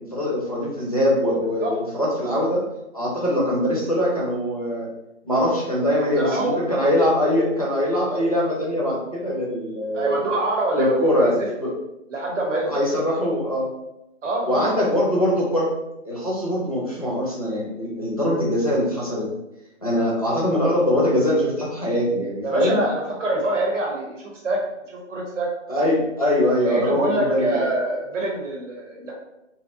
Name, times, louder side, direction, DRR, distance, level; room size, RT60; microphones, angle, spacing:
voice 1, 0.1-2.6 2.9-4.9 5.2-10.1 10.7-11.7 12.6-13.7 14.5-15.7 16.0-19.3 19.8-22.8 25.7-27.6, left 1 dB, 30° left, -5 dB, 0.4 m, -22 dB
voice 2, 5.9-6.6 9.9-11.5 12.1-12.8 14.2-14.8 22.4-25.5 26.6-29.1, right 2 dB, 70° right, -2 dB, 0.8 m, -25 dB
2.6 x 2.0 x 2.5 m, 0.91 s
hypercardioid pair, 170°, 38 cm